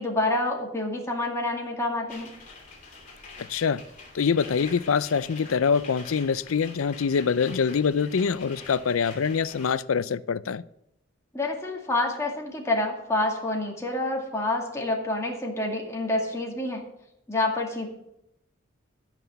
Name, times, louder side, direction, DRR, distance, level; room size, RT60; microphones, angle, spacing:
voice 1, 0.0-2.3 11.3-16.8 17.3-17.9, left 2 dB, 15° left, 2.1 m, -28 dB
sound 1, 2.1-9.7, left 3 dB, 40° left, 2.9 m, -46 dB
voice 2, 3.4-3.8 4.1-10.6, left 6 dB, 90° left, 0.5 m, -25 dB
14.0 x 6.0 x 6.8 m
head